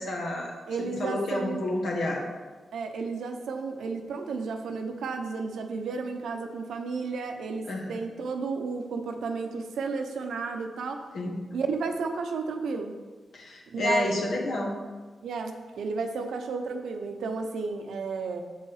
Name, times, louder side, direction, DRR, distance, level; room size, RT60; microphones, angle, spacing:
voice 1, 0.0-2.2 7.7-8.0 11.1-11.3 13.3-14.8, left 2 dB, 80° left, -2 dB, 1.6 m, -30 dB
voice 2, 0.7-1.6 2.7-11.0 11.5-12.9 13.7-14.1 15.2-18.4, right 4 dB, 85° right, 5 dB, 0.8 m, -32 dB
7.1 x 5.6 x 4.9 m, 1.3 s
cardioid pair, 80°, 0 cm